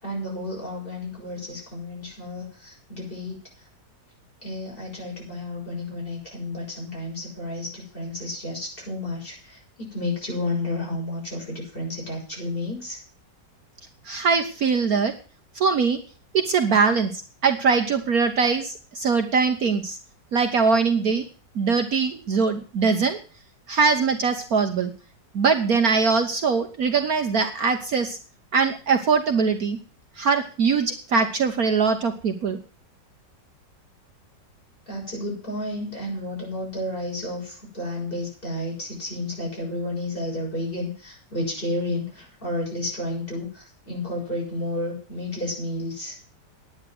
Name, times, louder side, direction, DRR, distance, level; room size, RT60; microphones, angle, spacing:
voice 1, 0.0-3.4 4.4-9.6 9.9-13.0 34.9-46.2, left 1 dB, 30° left, -3 dB, 7.2 m, -31 dB
voice 2, 14.0-15.1 15.5-16.0 16.3-20.0 20.3-21.2 21.5-23.2 23.7-24.9 25.3-28.2 28.5-29.8 30.2-32.6, right 5 dB, 60° right, 6 dB, 1.4 m, -22 dB
10.0 x 9.6 x 7.7 m, 0.39 s
omnidirectional pair, 1.9 m